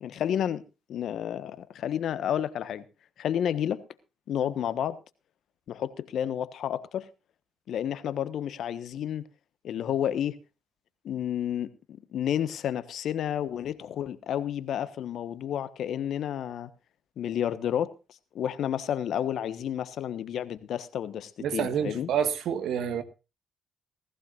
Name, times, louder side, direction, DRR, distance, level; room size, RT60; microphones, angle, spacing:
voice 1, 0.0-0.6 0.9-2.8 3.2-3.8 4.3-5.0 5.7-7.1 7.7-9.3 9.6-10.4 11.0-16.7 17.2-17.9 18.3-22.1, left 10 dB, 65° left, 1.3 m, -31 dB
voice 2, 21.4-23.0, right 8 dB, 70° right, 1.6 m, -28 dB
18.0 x 15.5 x 2.5 m
supercardioid pair, 60°, 0 cm